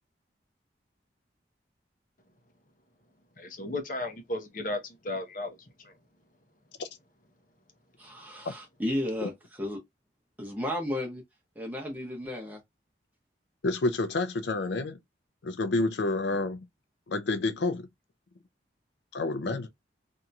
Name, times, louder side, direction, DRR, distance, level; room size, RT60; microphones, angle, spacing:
voice 1, 3.4-6.0, left 2 dB, 45° left, 0.8 m, -35 dB
voice 2, 8.0-9.8 10.4-11.2 11.6-12.6, left 1 dB, 10° right, 0.9 m, -33 dB
voice 3, 13.6-15.0 15.4-16.6 17.1-17.9 19.1-19.7, left 2 dB, 80° left, 0.5 m, -29 dB
2.8 x 2.7 x 2.3 m
head